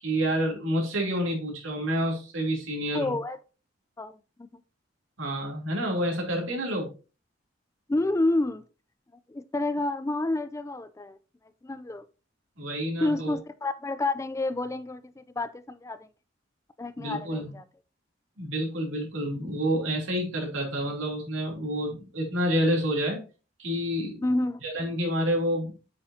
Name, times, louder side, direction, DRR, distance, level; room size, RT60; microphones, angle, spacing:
voice 1, 0.0-3.1 5.2-6.9 12.6-13.4 17.0-17.5 18.4-23.2 23.6-24.2 24.6-25.7, equal, 80° right, 2.9 m, -28 dB
voice 2, 2.9-3.4 4.0-4.6 7.9-8.6 9.3-11.2 11.6-12.1 13.0-16.1 16.8-17.6 24.2-24.6, left 2 dB, 15° left, 0.3 m, -29 dB
7.7 x 6.4 x 2.7 m
head